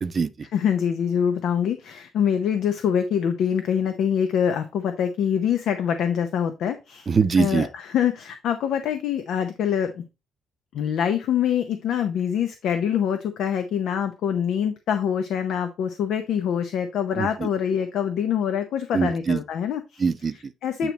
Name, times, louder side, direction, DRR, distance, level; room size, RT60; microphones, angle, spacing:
voice 1, 0.0-0.5 7.1-7.7 17.2-17.5 18.9-19.4 20.0-20.5 20.8-20.9, right 5 dB, 40° right, 0.6 m, -23 dB
voice 2, 0.5-7.1 7.4-7.7 7.9-9.9 10.7-20.0 20.6-20.9, left 8 dB, 75° left, 0.7 m, -24 dB
8.8 x 3.1 x 3.9 m
cardioid pair, 90°, 0 cm